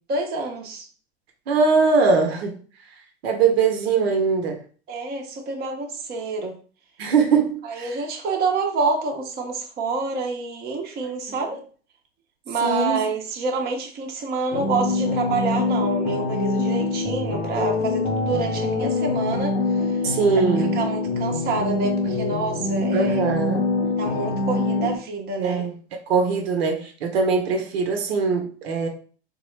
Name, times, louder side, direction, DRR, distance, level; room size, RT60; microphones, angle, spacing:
voice 1, 0.1-0.9 4.9-6.6 7.6-11.6 12.5-20.0 20.7-23.2 24.0-25.6, right 3 dB, 30° right, 1 dB, 0.7 m, -27 dB
voice 2, 1.5-2.6 3.2-4.6 7.0-7.9 12.6-13.0 20.0-20.8 22.9-23.7 25.4-25.7 26.1-28.9, right 4 dB, 65° right, 3 dB, 0.8 m, -21 dB
sound 1, 14.5-25.0, left 3 dB, 80° left, 0.7 m, -24 dB
3.6 x 2.1 x 3.1 m, 0.42 s
hypercardioid pair, 90°, 33 cm